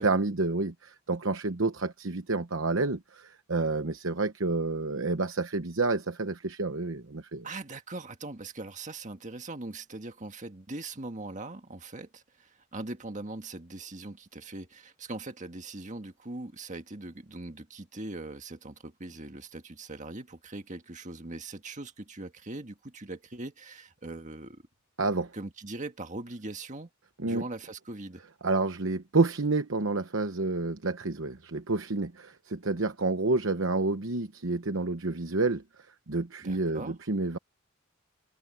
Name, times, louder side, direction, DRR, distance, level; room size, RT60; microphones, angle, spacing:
voice 1, 0.0-7.5 25.0-25.3 27.2-27.4 28.4-35.6 36.1-37.4, right 3 dB, 60° right, 1.0 m, -29 dB
voice 2, 7.4-24.6 25.3-26.9 27.2-28.2 36.4-37.0, right 2 dB, 35° right, 1.7 m, -41 dB
head